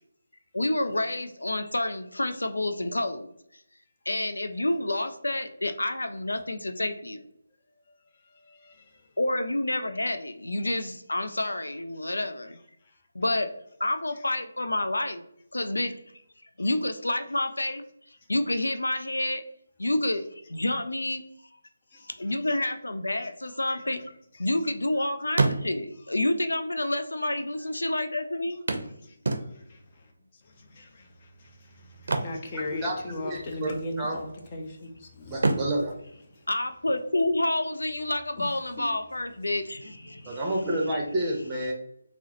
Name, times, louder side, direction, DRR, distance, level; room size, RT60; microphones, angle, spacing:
voice 1, 0.5-3.3 4.1-7.3 9.2-12.6 13.1-13.5 13.8-15.2 15.5-15.9 16.6-19.4 19.8-21.2 22.0-24.1 24.4-28.6 36.5-40.4, left 1 dB, 85° left, 0.3 m, -29 dB
voice 2, 8.5-8.8 21.9-22.1 29.3-29.4 29.7-29.8 30.7-31.1 31.4-31.5 31.8-35.4 38.4-38.5, left 1 dB, 30° left, 0.6 m, -37 dB
sound 1, 23.6-24.9 25.2-26.1 27.0-27.1 27.3-27.4 28.7-29.9 31.9-33.2 33.5-33.7 34.2-34.9 35.3-37.1 39.1-39.2 39.6-39.7, right 3 dB, 60° right, 0.5 m, -30 dB
voice 3, 32.8-34.2 35.3-35.9 40.3-41.7, right 1 dB, 15° right, 0.7 m, -29 dB
3.7 x 2.0 x 2.8 m
figure-of-eight pair, 155°, 0 cm